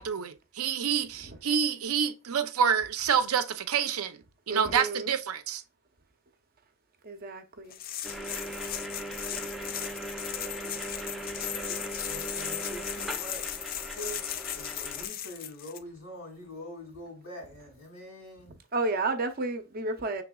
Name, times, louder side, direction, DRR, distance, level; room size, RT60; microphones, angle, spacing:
voice 1, 0.0-4.2 4.5-5.6, right 7 dB, 90° right, 0.6 m, -27 dB
voice 2, 4.5-5.1 7.0-7.8 11.7-11.9 12.3-12.4 18.7-20.2, right 2 dB, 45° right, 0.7 m, -32 dB
sound 1, 7.7-15.8, left 10 dB, 40° left, 0.3 m, -37 dB
sound 2, 8.0-15.1, right 1 dB, ahead, 0.6 m, -39 dB
voice 3, 12.0-13.5 13.8-18.5, equal, 70° left, 2.1 m, -44 dB
5.9 x 3.4 x 2.3 m
head